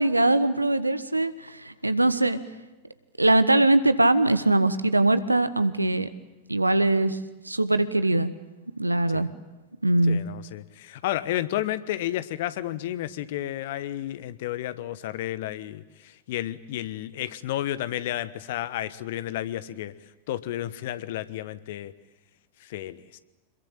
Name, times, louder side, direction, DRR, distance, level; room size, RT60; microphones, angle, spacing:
voice 1, 0.0-2.4 3.2-6.1 6.5-7.2 7.5-8.3 8.8-9.3 9.8-10.2, right 2 dB, 85° right, 13 dB, 1.2 m, -22 dB
voice 2, 10.1-19.9 20.3-21.9 22.6-23.2, left 13 dB, 55° left, 15 dB, 1.2 m, -32 dB
26.5 x 21.5 x 8.9 m, 1.1 s
figure-of-eight pair, 90°, 0 cm